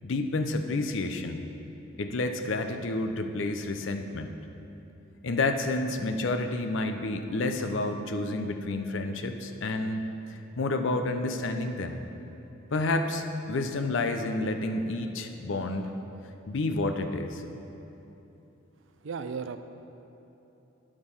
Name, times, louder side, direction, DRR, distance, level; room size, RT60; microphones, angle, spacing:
voice 1, 0.0-1.4 2.0-4.3 5.2-10.0 10.6-12.0 12.7-15.9 16.5-17.4, left 2 dB, 60° left, 7 dB, 0.6 m, -29 dB
voice 2, 19.0-19.6, right 5 dB, 65° right, 9 dB, 0.4 m, -34 dB
10.5 x 5.0 x 5.5 m, 3.0 s
head